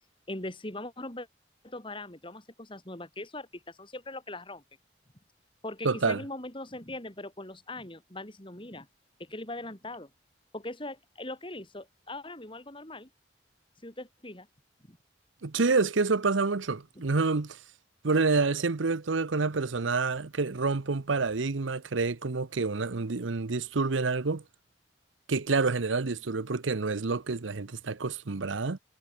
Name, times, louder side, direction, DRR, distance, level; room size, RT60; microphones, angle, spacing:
voice 1, 0.3-1.3 1.6-4.6 5.6-8.9 9.2-10.1 10.5-13.1 13.8-14.5 14.9-15.0, left 2 dB, 25° left, 3.3 m, -40 dB
voice 2, 5.8-6.2 15.4-17.6 18.0-24.4 25.3-28.8, right 4 dB, 90° right, 0.9 m, -28 dB
head